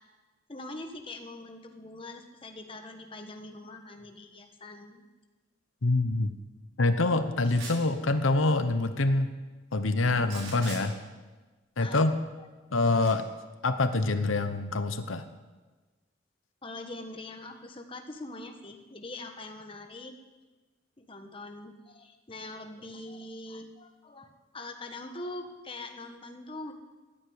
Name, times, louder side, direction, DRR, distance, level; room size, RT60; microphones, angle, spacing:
voice 1, 0.5-5.1 11.8-12.1 16.6-20.1 21.0-26.7, left 2 dB, 25° left, 5 dB, 1.3 m, -43 dB
voice 2, 5.8-6.3 6.8-9.3 9.7-10.9 11.8-12.1 12.7-13.3 13.6-15.2, left 2 dB, 85° left, 9 dB, 1.0 m, -25 dB
sound 1, 7.4-7.9 10.2-10.8 13.0-13.1, right 3 dB, 80° right, 6.0 m, -41 dB
14.0 x 10.0 x 9.5 m, 1.3 s
head